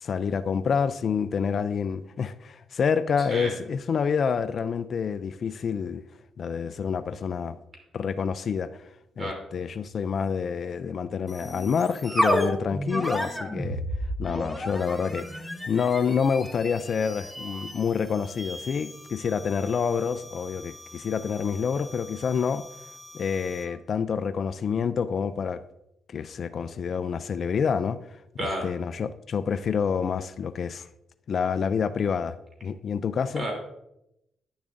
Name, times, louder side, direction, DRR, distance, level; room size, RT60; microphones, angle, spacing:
voice 1, 0.0-6.0 6.4-7.6 7.9-8.7 9.2-13.8 14.2-22.7 23.1-25.6 26.1-28.0 28.4-30.9 31.3-33.5, left 6 dB, 50° left, 13 dB, 0.3 m, -28 dB
voice 2, 3.3-3.5 9.2-9.4 28.4-28.7 33.3-33.5, right 1 dB, 35° right, 0 dB, 3.0 m, -30 dB
sound 1, 11.3-23.8, equal, ahead, 1.0 m, -33 dB
10.5 x 7.1 x 2.6 m, 0.83 s
cardioid pair, 90°, 0 cm